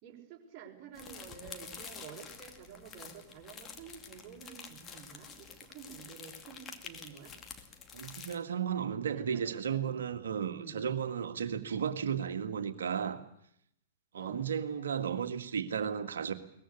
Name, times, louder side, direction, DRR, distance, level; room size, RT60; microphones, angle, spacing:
voice 1, 0.0-7.4 9.1-10.0 10.5-10.9 14.2-14.4, right 7 dB, 35° right, 5.9 m, -50 dB
sound 1, 0.9-8.4, left 6 dB, 25° left, 2.5 m, -48 dB
voice 2, 7.9-13.2 14.1-16.3, right 7 dB, 65° right, 2.1 m, -34 dB
22.5 x 20.0 x 8.4 m
figure-of-eight pair, 105°, 0 cm